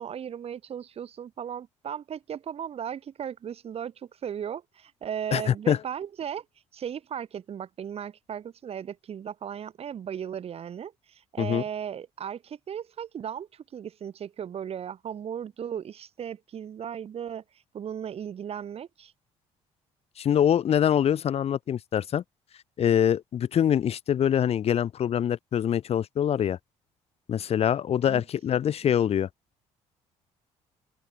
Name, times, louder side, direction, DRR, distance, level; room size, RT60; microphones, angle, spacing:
voice 1, 0.0-6.5 6.7-17.4 17.7-19.1 28.1-28.2 28.8-28.9, right 8 dB, 50° right, 5.2 m, -36 dB
voice 2, 5.3-5.8 11.4-11.6 20.2-22.2 22.8-26.6 27.3-29.3, left 9 dB, 55° left, 1.8 m, -24 dB
open air
cardioid pair, 85°, 13 cm